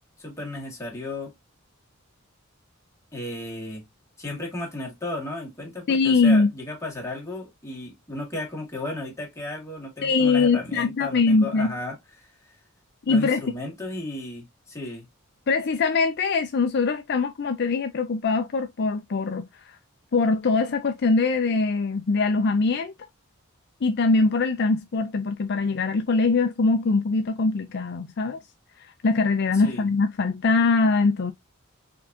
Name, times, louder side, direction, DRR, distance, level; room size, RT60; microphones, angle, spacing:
voice 1, 0.2-1.3 3.1-3.8 4.2-12.0 12.4-12.5 13.1-15.0 29.5-29.9, left 2 dB, 15° left, 2.1 m, -34 dB
voice 2, 5.9-6.5 10.0-11.7 13.1-13.6 15.5-19.5 20.1-22.9 23.8-28.4 29.0-31.3, left 3 dB, 50° left, 0.5 m, -22 dB
4.4 x 3.6 x 2.7 m
head